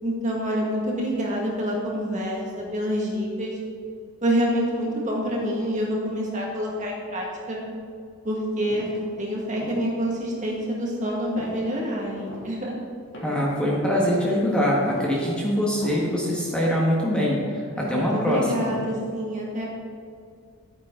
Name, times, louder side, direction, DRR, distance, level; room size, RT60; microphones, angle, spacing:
voice 1, 0.0-3.6 4.2-7.6 8.2-8.9 9.2-12.7 17.8-19.7, equal, 35° right, -3 dB, 1.8 m, -27 dB
sound 1, 8.7-9.0 9.5-10.0 10.4-10.6 11.4-11.7 12.1-12.5 13.1-13.5 13.8-14.2 14.9-15.2 15.7-16.1 16.5-16.6, equal, 55° left, 2.8 m, -39 dB
voice 2, 13.2-18.7, equal, 5° left, -5 dB, 1.5 m, -23 dB
11.5 x 9.1 x 3.8 m, 2.3 s
head